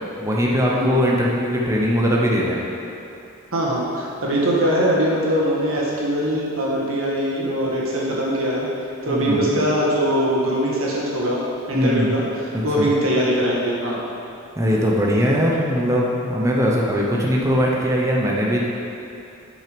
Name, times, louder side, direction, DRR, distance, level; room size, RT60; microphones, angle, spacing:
voice 1, 0.2-2.6 9.1-9.4 11.7-12.1 12.5-12.9 14.6-18.7, equal, 15° right, -3 dB, 0.9 m, -20 dB
voice 2, 3.5-8.7 9.0-14.1, equal, 85° right, -4 dB, 1.9 m, -22 dB
9.1 x 6.1 x 5.2 m, 2.7 s
head